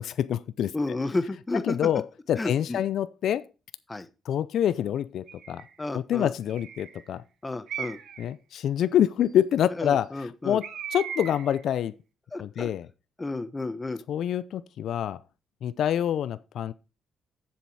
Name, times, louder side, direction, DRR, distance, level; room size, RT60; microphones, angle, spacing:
voice 1, 0.0-0.7 1.7-2.0 2.3-3.5 4.3-5.6 5.9-7.2 8.2-10.1 10.4-11.9 12.4-12.9 14.1-15.2 15.6-16.7, left 10 dB, 70° left, 0.5 m, -26 dB
voice 2, 0.7-1.8 2.3-2.8 3.9-4.1 5.8-6.3 7.4-8.0 9.8-10.6 12.3-12.7 13.2-14.0, left 2 dB, 20° left, 0.9 m, -31 dB
Bird, 5.3-5.7 6.5-7.0 7.7-8.3 10.6-11.6, right 8 dB, 70° right, 1.3 m, -38 dB
7.3 x 7.1 x 4.7 m
cardioid pair, 90°, 0 cm